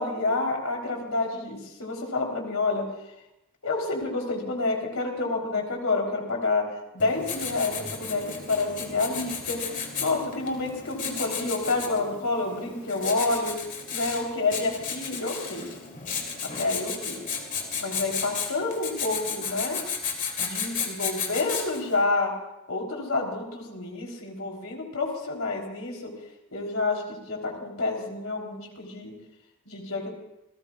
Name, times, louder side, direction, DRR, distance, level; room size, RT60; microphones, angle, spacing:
voice 1, 0.0-2.9 3.6-6.7 6.9-9.6 10.0-13.6 13.9-15.7 16.6-17.2 17.8-19.8 20.4-22.3 22.7-26.1 26.5-29.2 29.7-30.1, left 3 dB, 75° left, 0 dB, 3.7 m, -28 dB
Writing, 7.0-21.9, left 6 dB, 40° left, 2.7 m, -34 dB
28.5 x 18.0 x 2.4 m, 0.89 s
head